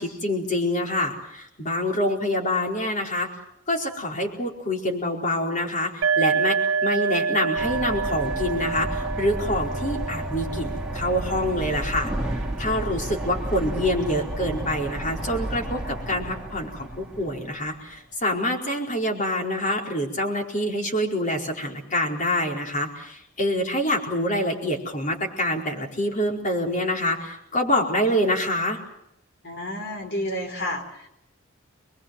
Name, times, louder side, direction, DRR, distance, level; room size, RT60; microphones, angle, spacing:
voice 1, 0.0-3.3 3.7-28.8, left 1 dB, 40° left, 1 dB, 4.6 m, -26 dB
sound 1, 6.0-13.5, right 5 dB, 65° right, 1.0 m, -28 dB
sound 2, 7.6-17.8, right 1 dB, 5° right, 2.5 m, -32 dB
voice 2, 29.4-31.1, left 1 dB, 55° left, 4 dB, 4.7 m, -30 dB
25.0 x 22.0 x 7.8 m, 0.77 s
head